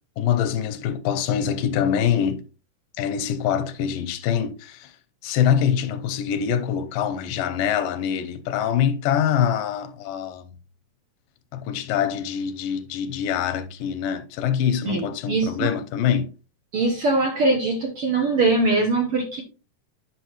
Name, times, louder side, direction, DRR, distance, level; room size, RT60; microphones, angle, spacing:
voice 1, 0.2-2.4 3.0-4.9 5.2-10.5 11.5-16.3, left 8 dB, 85° left, 2.4 m, -24 dB
voice 2, 14.8-15.7 16.7-19.4, right 3 dB, 65° right, 1.5 m, -22 dB
9.3 x 6.1 x 3.0 m
omnidirectional pair, 4.0 m